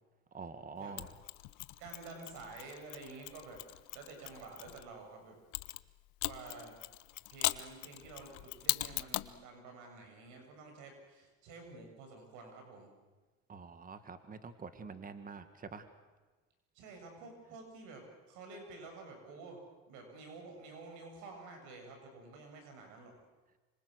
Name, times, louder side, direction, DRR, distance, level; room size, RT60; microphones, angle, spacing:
voice 1, 0.3-1.1 13.5-15.9, right 5 dB, 30° right, 10 dB, 1.9 m, -46 dB
Mechanisms, 1.0-4.8 5.5-9.4, left 21 dB, 80° left, 0.9 m, -39 dB
voice 2, 1.8-3.6 3.9-5.4 6.2-6.8 7.3-12.9 16.7-19.6 19.9-23.1, right 3 dB, 80° right, 4 dB, 7.0 m, -50 dB
26.5 x 25.5 x 6.5 m, 1.2 s
supercardioid pair, 100°, 30 cm